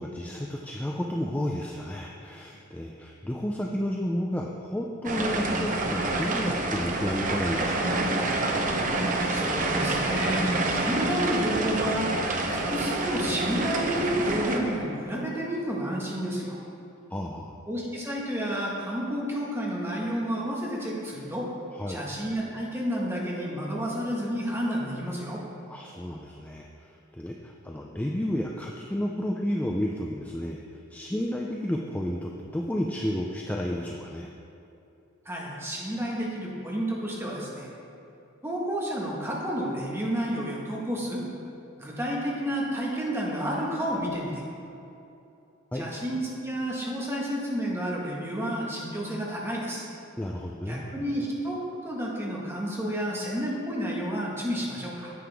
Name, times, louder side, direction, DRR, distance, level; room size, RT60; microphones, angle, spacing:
voice 1, 0.0-8.1 17.1-17.6 21.7-22.0 25.7-34.3 45.7-45.9 50.2-50.8, equal, 5° left, 0 dB, 0.4 m, -32 dB
sound 1, 5.0-14.6, right 2 dB, 40° right, 0.7 m, -27 dB
voice 2, 9.3-12.1 12.5-16.6 17.7-21.5 21.9-25.4 35.2-37.7 38.4-41.2 41.8-44.4 45.7-49.8 50.7-51.6 51.8-55.1, equal, 10° right, -4 dB, 1.4 m, -30 dB
9.5 x 7.7 x 3.5 m, 2.8 s
head